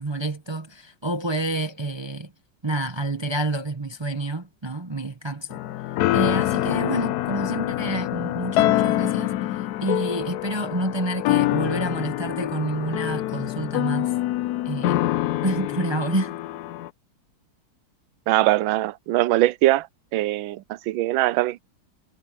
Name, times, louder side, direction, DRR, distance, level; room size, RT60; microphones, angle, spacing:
voice 1, 0.0-2.3 2.6-5.6 6.1-14.1 14.6-15.0 15.4-16.4, right 1 dB, 35° right, 0.4 m, -28 dB
sound 1, 5.5-16.9, left 15 dB, 90° left, 0.8 m, -25 dB
voice 2, 18.3-19.9 20.1-21.6, right 16 dB, 75° right, 1.3 m, -21 dB
omnidirectional pair, 2.3 m